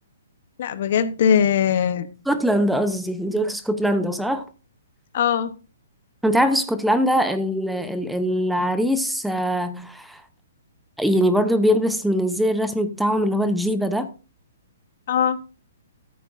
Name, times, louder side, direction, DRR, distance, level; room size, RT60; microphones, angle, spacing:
voice 1, 0.6-2.1 5.1-5.5 15.1-15.4, left 8 dB, 55° left, 0.9 m, -20 dB
voice 2, 2.3-4.4 6.2-10.2 11.0-14.1, equal, ahead, 0.7 m, -22 dB
13.5 x 8.5 x 2.5 m
hypercardioid pair, 150°, 0 cm